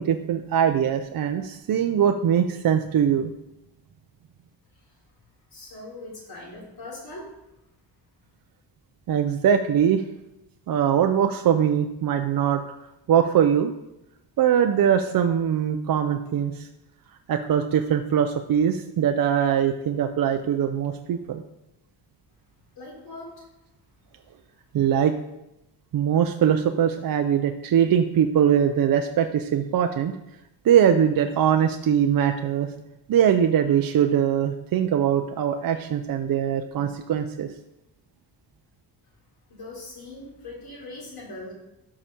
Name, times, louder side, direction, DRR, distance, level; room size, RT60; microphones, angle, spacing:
voice 1, 0.0-3.3 9.1-10.0 10.7-12.6 13.1-13.7 14.4-16.7 17.3-21.4 24.7-25.1 25.9-30.1 30.6-32.7 33.1-37.5, right 9 dB, 55° right, 6 dB, 0.5 m, -22 dB
voice 2, 5.5-7.3 22.8-23.4 39.5-41.5, left 2 dB, 60° left, -3 dB, 3.4 m, -40 dB
12.0 x 4.9 x 4.4 m, 0.91 s
wide cardioid pair, 175°, 42 cm